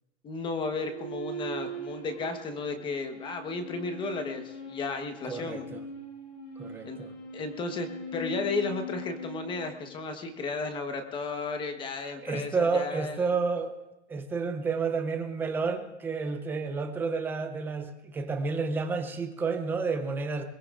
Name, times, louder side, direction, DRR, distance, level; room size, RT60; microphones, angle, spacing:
voice 1, 0.2-5.7 6.8-7.0 7.3-13.2, left 3 dB, 15° left, 6 dB, 1.1 m, -34 dB
sound 1, 0.8-10.4, left 1 dB, 80° left, 7.4 m, -41 dB
voice 2, 5.3-5.8 6.6-7.1 12.2-13.8 14.1-20.4, right 4 dB, 5° right, 6 dB, 0.5 m, -30 dB
22.0 x 21.5 x 2.5 m, 0.94 s
hypercardioid pair, 155°, 36 cm